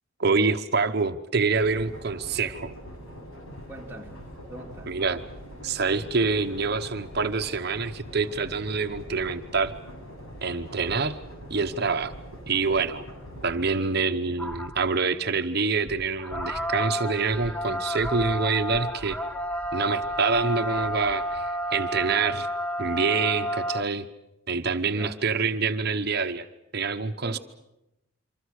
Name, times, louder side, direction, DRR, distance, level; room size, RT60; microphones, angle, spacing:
voice 1, 0.2-2.7 4.9-5.2 5.6-9.7 10.4-11.2 11.5-12.1 12.5-13.0 13.4-19.2 19.7-22.5 22.8-24.1 24.5-26.5 26.7-27.4, right 4 dB, 50° right, 8 dB, 1.0 m, -26 dB
sound 1, 1.6-13.7, equal, 90° left, 7.9 m, -43 dB
voice 2, 3.7-4.1 4.5-5.0 24.9-25.2 27.2-27.4, right 1 dB, 10° right, 0 dB, 2.5 m, -42 dB
sound 2, 14.4-15.0 15.3-15.5 15.8-23.8, equal, 5° left, 1.4 m, -31 dB
27.5 x 25.0 x 6.5 m, 0.89 s
head